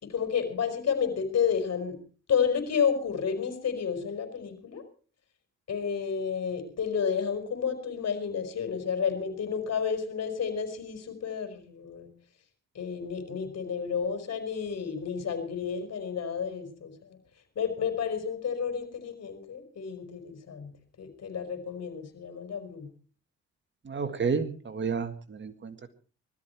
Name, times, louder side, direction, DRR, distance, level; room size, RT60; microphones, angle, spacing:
voice 1, 0.0-2.0 2.3-4.8 5.7-12.1 12.7-17.2 17.5-20.7 21.0-22.9, left 7 dB, 55° left, 7 dB, 4.8 m, -31 dB
voice 2, 23.8-25.9, right 5 dB, 40° right, 9 dB, 1.8 m, -31 dB
20.0 x 13.5 x 4.6 m, 0.39 s
cardioid pair, 90°, 30 cm